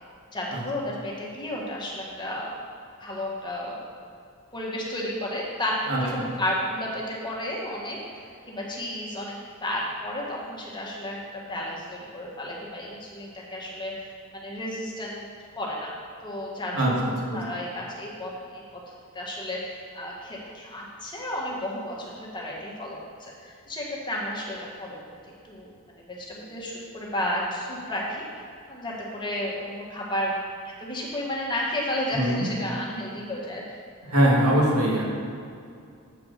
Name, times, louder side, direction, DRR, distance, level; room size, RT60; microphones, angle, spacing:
voice 1, 0.3-2.5 3.0-3.8 4.5-8.0 8.5-9.4 9.6-15.2 15.5-15.9 16.2-16.9 17.3-18.8 19.1-25.2 25.5-25.7 26.1-28.3 28.7-30.4 30.8-33.8, left 1 dB, 20° left, -3 dB, 1.4 m, -32 dB
voice 2, 32.1-32.5 34.1-35.0, right 1 dB, 90° right, -3 dB, 2.0 m, -21 dB
7.7 x 4.7 x 6.5 m, 2.4 s
head